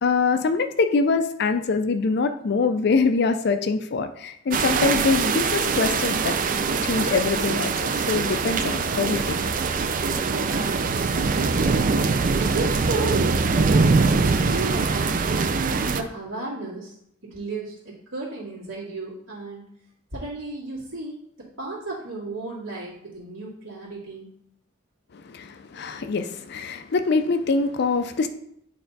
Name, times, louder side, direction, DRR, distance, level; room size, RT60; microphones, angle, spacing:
voice 1, 0.0-6.4 6.8-9.4 25.1-28.3, left 4 dB, 55° left, 8 dB, 0.4 m, -24 dB
sound 1, 4.5-16.0, right 4 dB, 40° right, 0.4 m, -23 dB
voice 2, 10.2-11.7 12.4-16.9 17.2-19.6 20.1-24.3, right 3 dB, 80° right, -11 dB, 2.2 m, -33 dB
8.8 x 3.4 x 4.0 m, 0.72 s
head